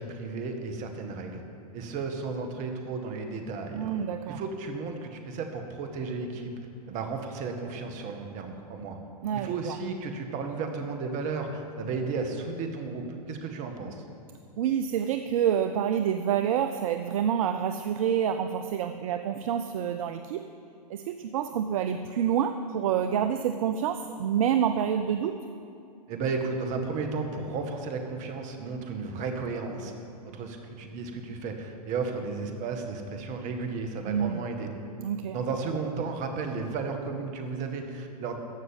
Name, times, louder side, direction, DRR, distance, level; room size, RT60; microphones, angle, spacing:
voice 1, 0.0-1.4 1.7-4.0 4.3-6.5 6.9-9.0 9.3-14.0 26.1-29.9 30.2-34.8 35.3-38.4, right 4 dB, 35° right, 5 dB, 1.8 m, -33 dB
voice 2, 3.7-4.4 9.2-9.8 14.6-20.5 20.9-25.4 34.1-34.4 35.0-35.4, right 9 dB, 55° right, 9 dB, 0.6 m, -27 dB
15.0 x 6.2 x 9.7 m, 2.6 s
hypercardioid pair, 115°, 21 cm